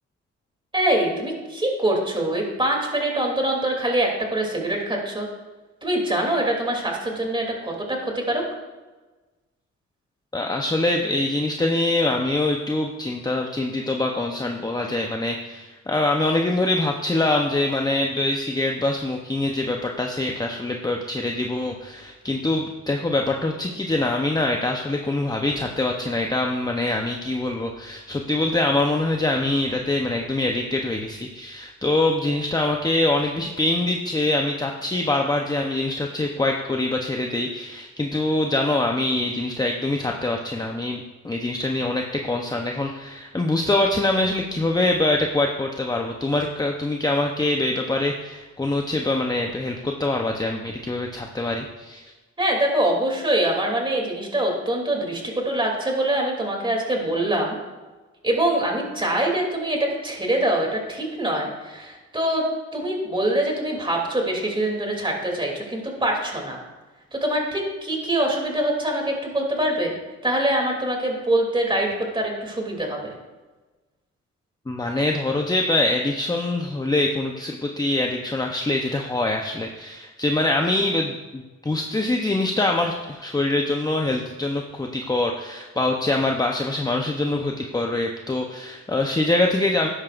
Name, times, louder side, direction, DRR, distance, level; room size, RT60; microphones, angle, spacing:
voice 1, 0.7-5.3 5.8-8.4 52.4-57.5 58.2-62.4 62.7-66.6 67.1-69.9 70.2-71.9 72.1-73.1, right 1 dB, 15° right, 0 dB, 2.9 m, -24 dB
voice 2, 10.3-52.0 74.7-89.9, left 2 dB, 15° left, 2 dB, 0.8 m, -24 dB
13.0 x 10.5 x 2.5 m, 1.2 s
cardioid pair, 90°, 30 cm